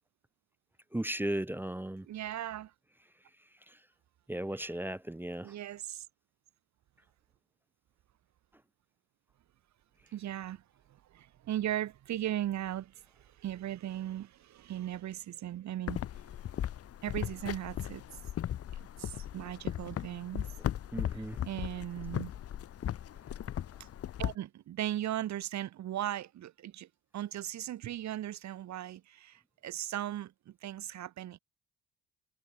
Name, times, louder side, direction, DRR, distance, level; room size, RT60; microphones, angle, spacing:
voice 1, 0.9-2.1 3.7-3.8 4.3-5.5 20.9-21.4, right 1 dB, 5° right, 0.5 m, -36 dB
voice 2, 2.1-2.7 4.6-4.7 5.4-6.1 10.1-10.6 10.9-16.0 17.0-18.0 19.0-20.5 21.1-22.3 24.2-31.4, right 12 dB, 65° right, 1.2 m, -38 dB
sound 1, 15.9-24.3, left 11 dB, 50° left, 0.8 m, -37 dB
cardioid pair, 90°, 30 cm